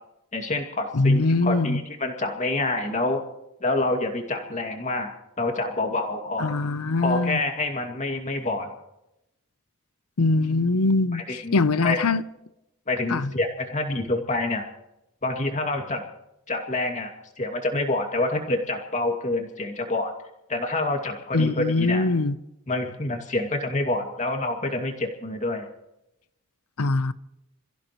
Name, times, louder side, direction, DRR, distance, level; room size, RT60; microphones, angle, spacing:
voice 1, 0.3-3.2 3.6-5.1 5.4-6.5 7.0-8.7 11.1-12.0 12.9-14.6 15.2-16.0 16.5-20.1 20.5-22.1 22.7-25.7, left 2 dB, 35° left, 2.4 m, -27 dB
voice 2, 0.9-1.8 6.4-7.4 10.2-12.2 13.1-13.3 21.3-22.4 26.8-27.1, left 3 dB, 80° left, 0.8 m, -22 dB
28.0 x 15.5 x 3.1 m
head